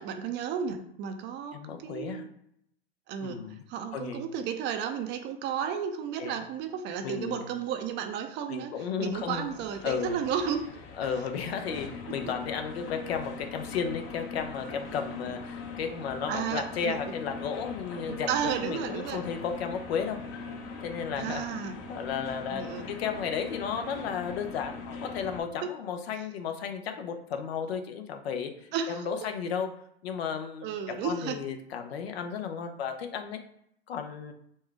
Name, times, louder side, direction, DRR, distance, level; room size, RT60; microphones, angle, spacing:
voice 1, 0.0-2.4 3.1-10.7 16.3-17.2 18.1-19.3 21.2-21.8 22.5-22.9 28.7-29.1 30.6-31.4, right 7 dB, 35° right, 7 dB, 0.5 m, -33 dB
voice 2, 1.5-2.2 3.2-3.6 3.9-4.2 6.2-6.4 7.0-7.4 8.5-9.5 9.8-10.1 11.0-20.2 20.8-21.4 21.9-29.7 30.0-33.4 33.9-34.3, left 7 dB, 70° left, 6 dB, 0.8 m, -34 dB
sound 1, 9.1-25.4, left 4 dB, 40° left, 0.8 m, -41 dB
4.4 x 2.3 x 4.6 m, 0.73 s
hypercardioid pair, 105°, 32 cm